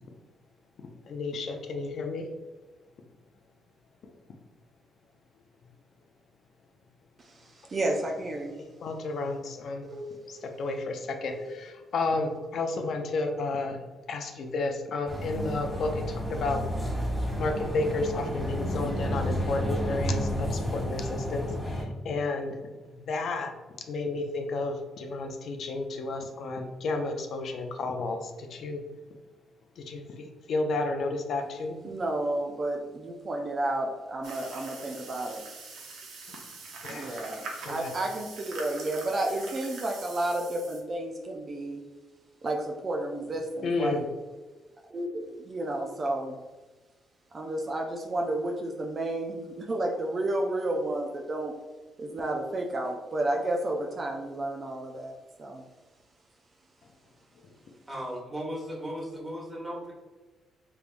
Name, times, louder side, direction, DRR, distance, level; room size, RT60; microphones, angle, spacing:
voice 1, 0.8-2.3 8.8-9.9 10.3-13.8 14.1-16.9 17.4-22.6 22.9-23.5 23.9-28.8 29.8-31.8 36.8-37.2 37.6-37.9 43.6-44.0, left 3 dB, 65° left, 4 dB, 0.4 m, -32 dB
voice 2, 7.2-8.5 9.8-10.5 11.3-11.4 31.8-35.4 36.9-41.8 42.4-44.0 44.9-46.4 47.3-51.5 52.0-55.6, right 1 dB, 40° right, 0 dB, 0.4 m, -31 dB
sound 1, 15.1-21.8, equal, 5° left, 1.1 m, -31 dB
sound 2, 34.2-40.8, right 4 dB, 80° right, 0.7 m, -43 dB
voice 3, 57.9-59.9, equal, 20° right, -3 dB, 1.3 m, -36 dB
3.4 x 3.2 x 2.5 m, 1.2 s
cardioid pair, 90°, 0 cm